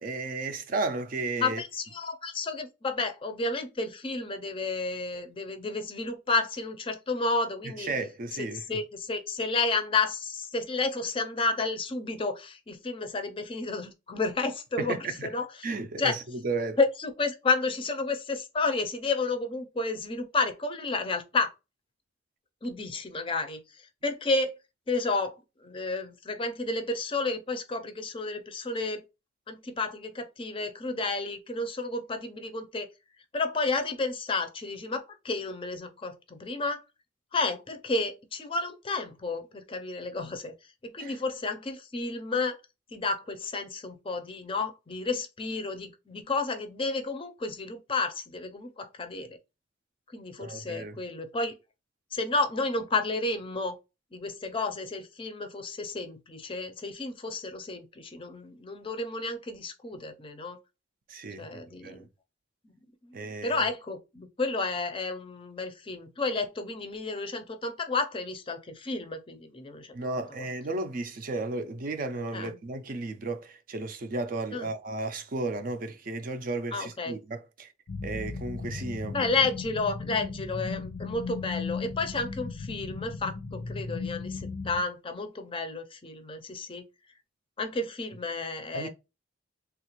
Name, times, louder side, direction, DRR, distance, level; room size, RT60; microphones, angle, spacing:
voice 1, 0.0-1.6 7.6-8.6 14.8-15.3 15.6-16.8 41.0-41.2 50.4-51.0 61.1-62.1 63.1-63.6 69.9-77.7 78.0-79.3 88.7-88.9, right 3 dB, 45° right, 0.4 m, -34 dB
voice 2, 1.4-7.9 8.7-15.0 15.3-15.5 16.0-16.2 16.8-21.5 22.6-23.6 24.0-24.5 24.9-25.3 25.6-29.0 29.5-32.9 33.3-36.8 37.3-40.5 40.9-42.6 42.9-49.4 50.1-51.6 52.1-53.7 54.1-60.6 61.4-62.0 63.4-69.9 70.4-70.5 72.3-72.5 74.5-74.7 76.7-77.1 79.1-86.8 87.6-88.9, left 3 dB, 30° left, 0.5 m, -31 dB
sound 1, 77.9-84.8, left 4 dB, 85° left, 0.6 m, -36 dB
3.4 x 2.4 x 2.9 m
head